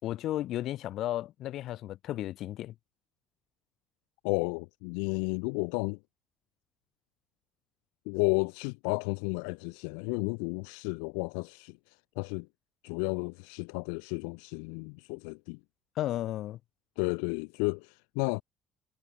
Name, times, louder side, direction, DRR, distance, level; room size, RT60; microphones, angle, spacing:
voice 1, 0.0-2.7 16.0-16.6, left 13 dB, 70° left, 5.5 m, -34 dB
voice 2, 4.2-6.0 8.0-12.5 12.8-15.6 17.0-18.4, left 40 dB or more, 85° left, 1.6 m, -32 dB
supercardioid pair, 70°, 0 cm